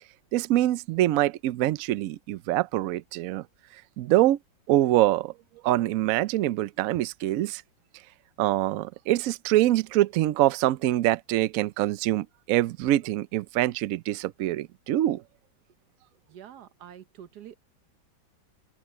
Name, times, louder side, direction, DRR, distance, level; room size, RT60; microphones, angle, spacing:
voice 1, 0.3-3.4 3.7-4.4 4.7-5.3 5.6-7.6 8.4-15.2, right 14 dB, 80° right, 0.7 m, -24 dB
voice 2, 16.3-17.6, right 10 dB, 65° right, 1.4 m, -46 dB
open air
omnidirectional pair, 2.0 m